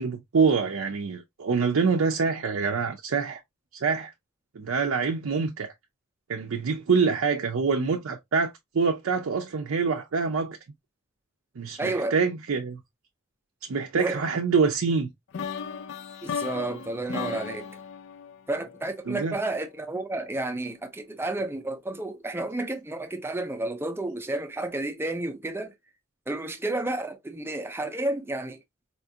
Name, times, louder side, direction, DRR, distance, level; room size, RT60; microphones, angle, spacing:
voice 1, 0.0-3.4 3.8-4.1 4.6-5.7 6.3-10.6 11.6-12.8 13.6-15.1 19.1-19.4, right 5 dB, 65° right, 0.5 m, -25 dB
voice 2, 11.8-12.2 13.9-14.2 16.2-17.8 18.5-25.7 26.3-28.6, right 2 dB, 10° right, 0.5 m, -31 dB
sound 1, 15.3-19.3, left 7 dB, 55° left, 0.3 m, -36 dB
4.2 x 2.4 x 2.7 m
head